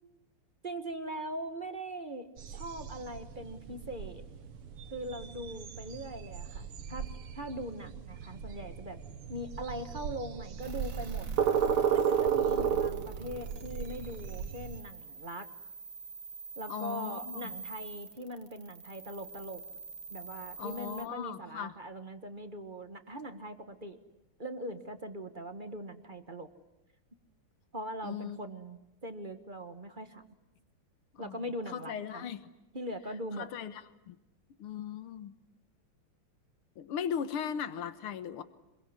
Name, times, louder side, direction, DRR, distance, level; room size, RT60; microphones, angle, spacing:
voice 1, 0.6-4.2 4.9-7.1 7.3-9.0 9.3-11.3 11.9-15.4 16.5-19.6 20.1-24.0 24.4-26.5 27.7-30.2 31.2-32.3 32.7-33.5, equal, 25° right, 9 dB, 1.5 m, -41 dB
sound 1, 2.4-14.8, right 8 dB, 80° right, 2.2 m, -34 dB
sound 2, 10.6-21.0, right 4 dB, 40° right, 2.2 m, -47 dB
voice 2, 16.7-17.5 20.6-21.7 28.0-28.4 31.2-31.4 31.7-32.4 33.4-33.7 34.1-34.2 34.6-35.3 36.8-38.4, left 8 dB, 85° left, 13 dB, 2.1 m, -38 dB
26.5 x 22.5 x 9.7 m, 0.94 s
omnidirectional pair, 2.4 m